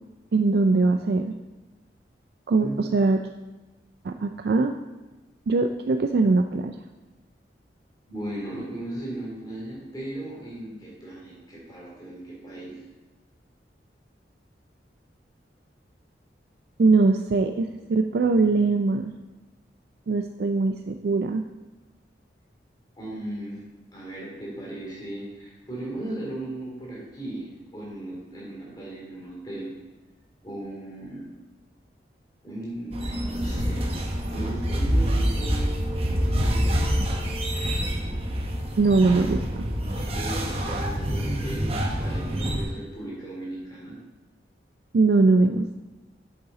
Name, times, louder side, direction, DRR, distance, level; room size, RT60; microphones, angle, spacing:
voice 1, 0.3-1.4 2.5-3.2 4.0-4.8 5.5-6.7 16.8-19.1 20.1-21.4 38.8-39.6 44.9-45.8, right 3 dB, 60° right, 6 dB, 0.3 m, -21 dB
voice 2, 8.1-12.8 23.0-23.6 23.9-27.5 27.7-29.7 30.4-31.2 32.4-34.0 34.3-35.7 36.4-37.1 40.0-43.9, right 1 dB, 25° left, -5 dB, 2.8 m, -37 dB
sound 1, 32.9-42.6, equal, 35° right, 0.9 m, -26 dB
8.7 x 6.9 x 3.9 m, 1.1 s
head